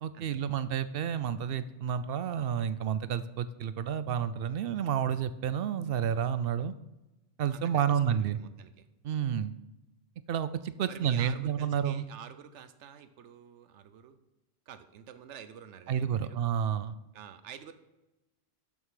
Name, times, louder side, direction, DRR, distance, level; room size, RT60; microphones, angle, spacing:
voice 1, 0.0-6.7 7.4-8.4 9.0-9.5 10.3-12.0 15.9-17.0, right 8 dB, 65° right, 14 dB, 0.7 m, -30 dB
voice 2, 7.5-8.9 10.9-14.2 14.7-16.4 17.1-17.7, right 8 dB, 85° right, 11 dB, 1.0 m, -49 dB
12.0 x 5.5 x 4.9 m, 1.0 s
omnidirectional pair, 1.2 m